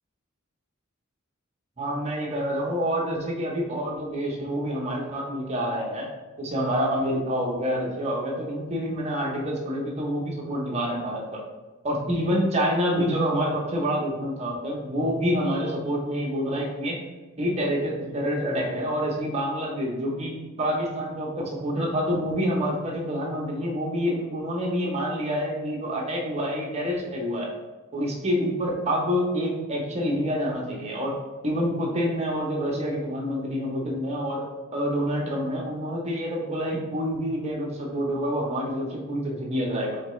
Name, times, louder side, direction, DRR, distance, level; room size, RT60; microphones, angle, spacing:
voice 1, 1.8-6.1 6.4-11.4 11.8-17.0 17.4-27.5 27.9-31.1 31.4-34.4 34.7-40.0, equal, 30° right, -2 dB, 0.9 m, -27 dB
4.3 x 3.8 x 3.1 m, 1.2 s
head